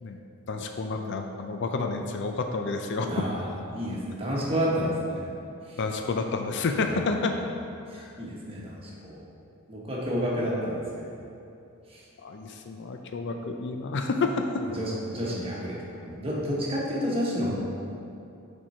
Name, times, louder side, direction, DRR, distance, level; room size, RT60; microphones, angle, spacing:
voice 1, 0.5-3.1 5.8-7.3 7.9-8.1 12.2-14.5, left 3 dB, 55° left, 4 dB, 0.4 m, -29 dB
voice 2, 3.0-5.3 5.7-5.8 6.9-7.0 7.9-9.2 9.7-11.2 11.9-12.0 14.6-17.5, equal, 25° right, -5 dB, 1.2 m, -30 dB
7.1 x 4.5 x 4.4 m, 2.6 s
head